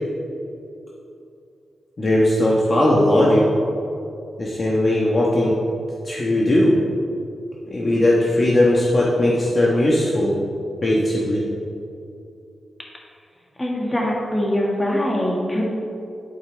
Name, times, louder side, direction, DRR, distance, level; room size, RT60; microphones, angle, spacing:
voice 1, 2.0-3.4 4.4-5.6 6.0-6.7 7.7-10.4 10.8-11.4, left 1 dB, 35° left, -4 dB, 1.2 m, -18 dB
voice 2, 13.6-15.6, left 1 dB, 15° left, -2 dB, 1.8 m, -22 dB
11.0 x 8.8 x 3.4 m, 2.6 s
wide cardioid pair, 125°, 0 cm